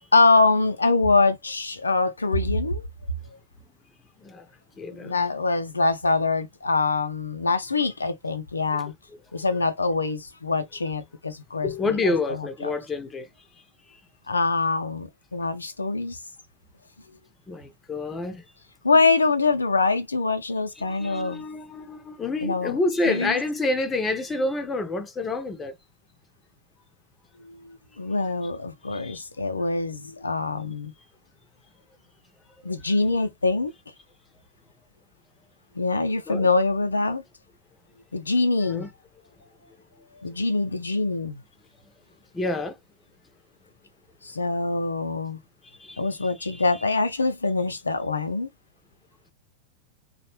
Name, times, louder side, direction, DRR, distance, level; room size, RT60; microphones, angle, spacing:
voice 1, 0.1-2.8 5.0-8.9 9.3-11.7 12.0-12.7 14.3-16.2 18.8-21.4 22.4-22.8 23.1-23.3 27.4-30.9 32.6-33.7 35.8-37.2 38.1-38.9 40.2-41.4 44.2-45.4 46.0-48.5, left 3 dB, 80° left, 0.3 m, -24 dB
voice 2, 4.8-5.3 8.7-8.8 11.6-13.3 17.5-18.4 20.8-25.7 28.9-29.2 36.3-36.5 38.6-38.9 42.3-42.7 45.8-46.6, left 2 dB, 15° left, 0.5 m, -28 dB
2.6 x 2.0 x 2.9 m
figure-of-eight pair, 90°, 0 cm